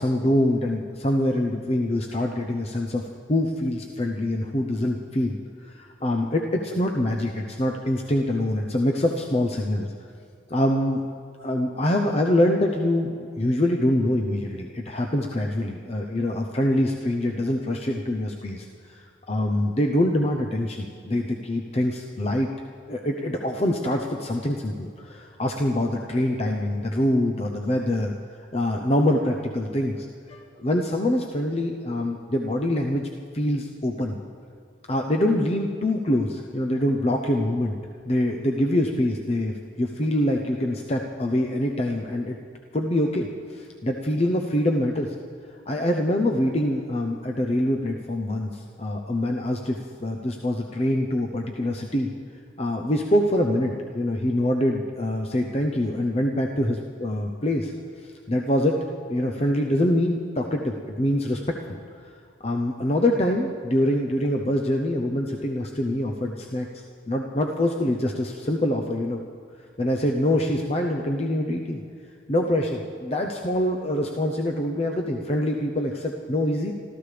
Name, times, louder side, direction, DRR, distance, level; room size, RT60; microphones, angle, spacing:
voice 1, 0.0-5.4 5.7-9.9 10.5-11.0 11.4-22.5 22.9-28.1 28.5-33.1 33.3-34.2 34.9-37.8 38.0-42.4 42.7-45.1 45.7-52.1 52.6-57.7 58.3-61.8 62.4-66.7 67.1-69.2 69.8-71.8 72.3-76.7, left 1 dB, 35° left, 2 dB, 0.7 m, -25 dB
27.0 x 13.5 x 3.4 m, 2.3 s
head